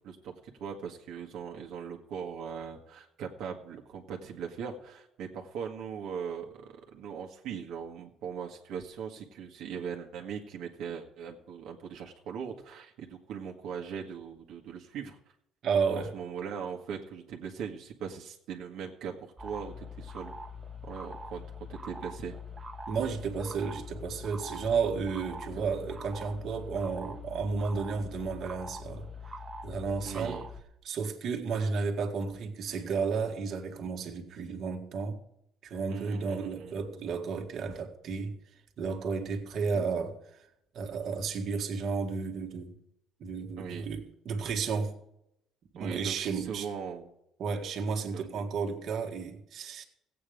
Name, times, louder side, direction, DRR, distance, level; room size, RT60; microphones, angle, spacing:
voice 1, 0.6-15.2 15.9-20.3 20.8-21.4 21.7-22.3 25.5-25.7 30.0-30.5 35.9-36.7 43.6-43.9 45.7-47.1 48.1-48.4, right 7 dB, 75° right, 1.6 m, -40 dB
voice 2, 15.6-16.1 22.9-29.1 29.6-30.4 30.8-35.2 35.6-38.4 38.8-40.5 40.7-42.8 43.2-45.0 45.8-46.7 47.4-49.8, right 5 dB, 55° right, 1.8 m, -32 dB
sound 1, 19.4-30.6, left 2 dB, 20° right, 1.2 m, -43 dB
16.5 x 8.6 x 5.1 m
cardioid pair, 135°, 0 cm